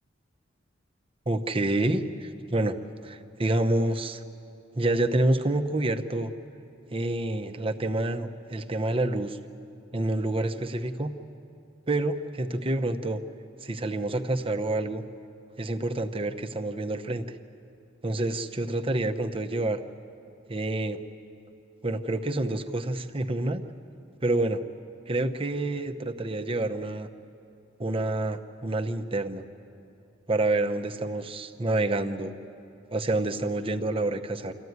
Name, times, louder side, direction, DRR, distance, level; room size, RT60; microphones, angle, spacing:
voice 1, 1.3-2.8 3.0-4.2 4.7-6.3 6.9-9.4 9.9-11.1 11.9-13.2 13.6-15.0 15.6-17.2 18.0-19.8 20.5-21.0 21.8-23.6 24.2-24.6 25.1-27.1 27.8-29.4 30.3-32.3 32.9-34.5, right 2 dB, 30° right, 7 dB, 0.9 m, -28 dB
26.0 x 14.5 x 9.5 m, 2.7 s
head